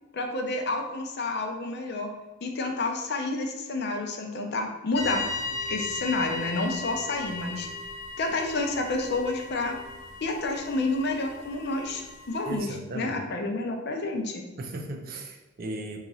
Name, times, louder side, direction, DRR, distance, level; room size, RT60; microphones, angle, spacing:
voice 1, 0.1-2.1 2.4-5.3 5.7-7.7 8.2-9.8 10.2-14.4, left 2 dB, 60° left, 3 dB, 0.5 m, -29 dB
sound 1, 4.9-12.6, left 3 dB, 90° left, 0.7 m, -37 dB
voice 2, 12.5-13.2 14.6-16.0, right 1 dB, 50° right, 3 dB, 0.4 m, -36 dB
2.9 x 2.4 x 4.0 m, 1.1 s
head